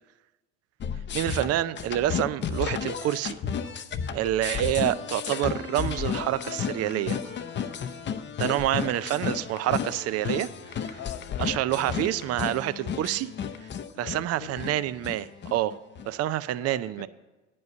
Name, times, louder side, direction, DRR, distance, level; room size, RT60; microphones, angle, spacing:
sound 1, 0.8-16.1, left 7 dB, 35° left, 0.6 m, -33 dB
voice 1, 1.1-3.4 4.1-7.2 8.4-11.0 11.4-13.3 14.0-15.8 16.1-17.1, right 13 dB, 50° right, 16 dB, 0.5 m, -27 dB
Wind instrument woodwind instrument, 5.5-9.3, equal, 70° right, 1.6 m, -53 dB
voice 2, 8.8-9.5 10.9-12.1 13.9-14.8 16.6-17.1, left 8 dB, 65° left, 7 dB, 1.1 m, -45 dB
9.5 x 5.4 x 7.9 m, 1.1 s
supercardioid pair, 85°, 31 cm